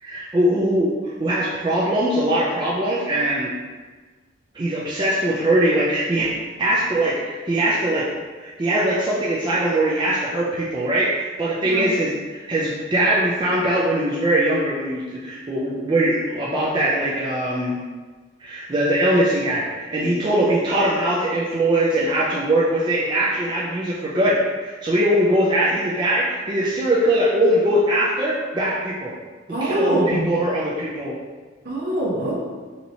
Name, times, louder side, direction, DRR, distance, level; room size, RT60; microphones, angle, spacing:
voice 1, 0.0-3.5 4.5-6.3 6.6-8.0 8.4-17.8 18.4-29.1 29.6-31.2, right 1 dB, 25° right, -6 dB, 0.4 m, -21 dB
voice 2, 29.5-30.3 31.6-32.4, right 1 dB, 50° right, -4 dB, 0.8 m, -23 dB
4.2 x 2.8 x 2.7 m, 1.4 s
head